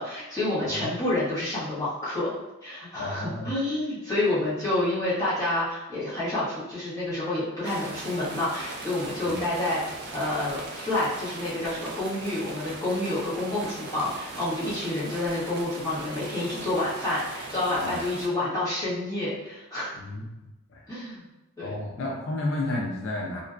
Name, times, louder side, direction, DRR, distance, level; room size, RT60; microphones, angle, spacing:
voice 1, 0.0-2.3 2.6-19.9 20.9-21.3 21.6-21.8, left 1 dB, 15° left, -11 dB, 1.0 m, -29 dB
voice 2, 2.9-3.5 9.2-9.4 17.8-18.0 19.9-20.8 21.6-23.4, left 2 dB, 65° left, -3 dB, 0.4 m, -32 dB
sound 1, 7.6-18.3, right 2 dB, 50° right, 0.4 m, -39 dB
2.4 x 2.1 x 2.4 m, 1.0 s
head